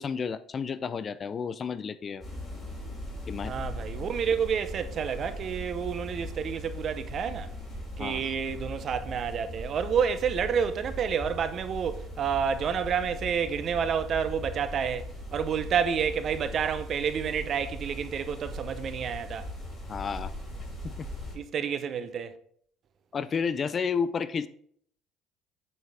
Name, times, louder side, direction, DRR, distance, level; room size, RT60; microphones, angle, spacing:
voice 1, 0.0-2.2 3.3-3.6 8.0-8.3 19.9-20.3 20.8-21.1 23.1-24.5, left 6 dB, 35° left, 0.3 m, -31 dB
sound 1, 2.2-21.4, left 1 dB, 15° left, 2.8 m, -39 dB
voice 2, 3.5-7.5 8.0-19.5 21.3-22.4, right 7 dB, 45° right, 0.6 m, -29 dB
8.6 x 4.2 x 3.4 m
cardioid pair, 110°, 0 cm